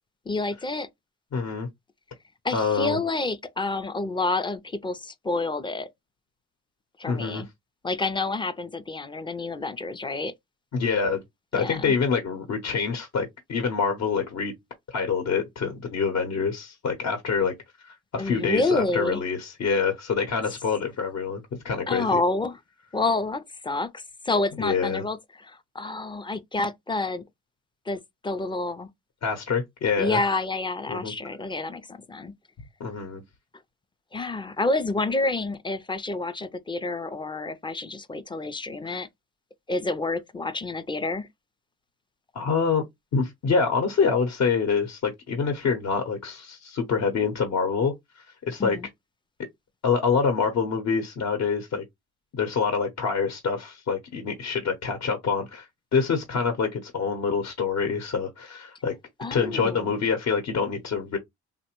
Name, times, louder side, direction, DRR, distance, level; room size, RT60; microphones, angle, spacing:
voice 1, 0.3-0.9 2.4-5.9 7.0-7.5 7.8-10.3 11.5-11.9 18.2-19.2 21.9-22.6 22.9-27.2 27.9-28.9 30.0-32.3 34.1-39.1 39.7-41.3 48.6-48.9 59.2-59.9, left 3 dB, 15° left, 0.4 m, -28 dB
voice 2, 1.3-1.7 2.5-3.0 7.1-7.4 10.7-11.2 11.5-14.6 14.9-17.5 17.8-22.2 24.6-25.0 29.2-30.2 30.9-31.1 32.8-33.2 38.9-39.0 42.3-42.8 43.1-48.8 49.8-51.8 52.3-58.9 59.3-61.2, left 5 dB, 60° left, 0.8 m, -26 dB
3.2 x 2.1 x 2.9 m
cardioid pair, 90°, 30 cm